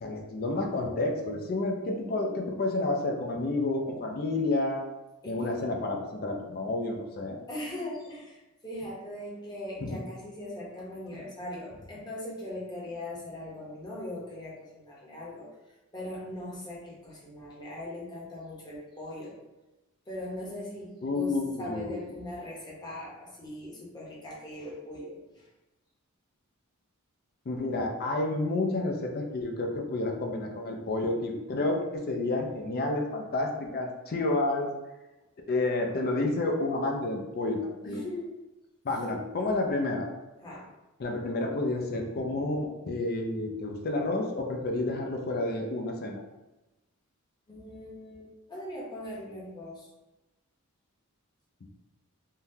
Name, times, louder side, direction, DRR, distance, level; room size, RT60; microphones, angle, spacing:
voice 1, 0.0-4.8 5.3-7.4 9.8-10.0 21.0-22.0 27.5-34.7 35.5-38.0 38.8-40.1 41.0-46.2, left 2 dB, 45° left, 1 dB, 0.4 m, -30 dB
voice 2, 5.2-5.6 7.5-19.4 20.1-25.5 37.8-38.3 40.4-40.7 47.5-49.9, left 1 dB, 20° left, -5 dB, 0.8 m, -40 dB
3.6 x 2.2 x 2.7 m, 1.0 s
head